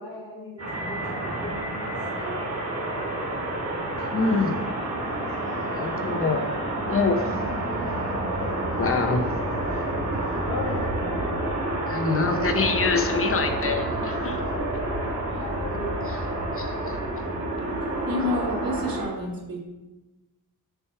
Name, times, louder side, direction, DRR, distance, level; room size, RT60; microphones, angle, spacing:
voice 1, 0.0-4.2 5.2-6.0 10.5-11.5 15.0-16.5, left 2 dB, 60° left, -7 dB, 1.5 m, -39 dB
sound 1, 0.6-19.0, right 1 dB, 35° right, 1.7 m, -29 dB
voice 2, 4.1-4.5 5.7-6.6 6.9-7.2 8.7-9.3 11.9-14.4 16.6-17.0, left 4 dB, 35° left, 5 dB, 0.7 m, -25 dB
voice 3, 18.1-19.6, left 1 dB, 60° right, 0 dB, 1.2 m, -29 dB
6.7 x 3.0 x 5.7 m, 1.1 s
wide cardioid pair, 125°, 38 cm